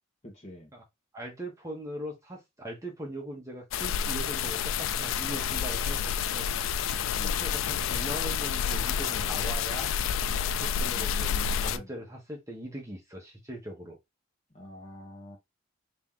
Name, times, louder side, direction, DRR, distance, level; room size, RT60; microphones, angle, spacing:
voice 1, 0.2-0.7 7.2-7.4 10.9-11.9 14.5-15.4, left 1 dB, 30° left, 1.3 m, -46 dB
voice 2, 1.1-6.5 7.2-9.9 10.4-14.0, right 1 dB, 15° right, 1.0 m, -40 dB
sound 1, 3.7-11.8, left 7 dB, 75° left, 0.3 m, -29 dB
3.0 x 2.9 x 3.7 m
head